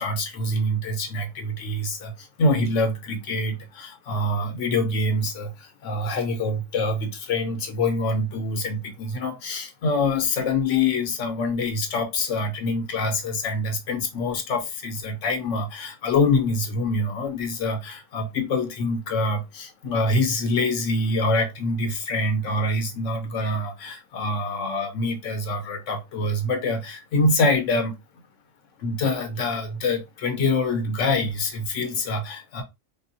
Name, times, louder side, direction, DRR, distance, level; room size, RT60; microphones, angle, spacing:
voice 1, 0.0-28.0 28.8-32.6, left 2 dB, 80° left, 1.1 m, -25 dB
3.7 x 2.3 x 2.6 m
omnidirectional pair, 1.3 m